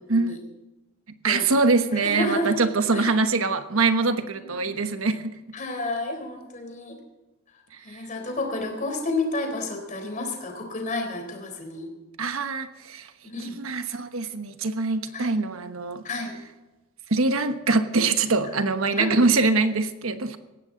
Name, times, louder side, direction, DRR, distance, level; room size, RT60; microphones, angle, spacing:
voice 1, 0.0-0.4 1.3-1.4 1.9-2.6 2.9-3.2 4.5-4.8 5.5-7.0 7.8-11.9 13.2-13.6 15.1-15.3 16.0-16.4 19.0-19.2, left 2 dB, 35° left, 3 dB, 3.8 m, -30 dB
voice 2, 1.2-5.3 7.7-8.0 12.2-13.1 13.4-16.0 17.1-20.4, right 3 dB, 70° right, 9 dB, 1.2 m, -24 dB
18.0 x 15.5 x 3.9 m, 1.1 s
head